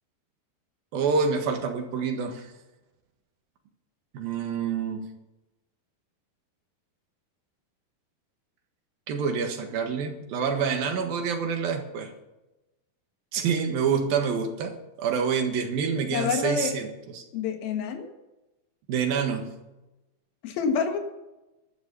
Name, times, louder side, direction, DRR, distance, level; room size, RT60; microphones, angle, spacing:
voice 1, 0.9-2.5 4.1-5.1 9.1-12.1 13.3-14.7 15.0-16.9 17.1-17.2 18.9-19.5, right 6 dB, 75° right, 5 dB, 3.3 m, -27 dB
voice 2, 16.1-16.7 17.3-18.1 20.4-21.0, left 6 dB, 80° left, 6 dB, 3.3 m, -27 dB
12.0 x 11.5 x 6.9 m, 1.0 s
omnidirectional pair, 4.2 m